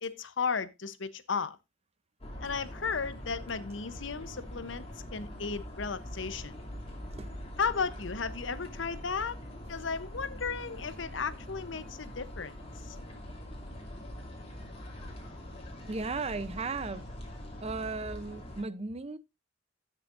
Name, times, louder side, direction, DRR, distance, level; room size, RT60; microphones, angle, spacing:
voice 1, 0.0-1.6 2.4-4.9 5.1-6.5 7.6-9.3 9.7-12.5 12.9-13.0, left 5 dB, 80° left, 0.9 m, -34 dB
sound 1, 2.2-18.6, left 1 dB, 30° left, 2.8 m, -43 dB
voice 2, 15.9-17.1 17.6-19.2, right 3 dB, 35° right, 0.7 m, -36 dB
17.0 x 6.6 x 2.6 m
head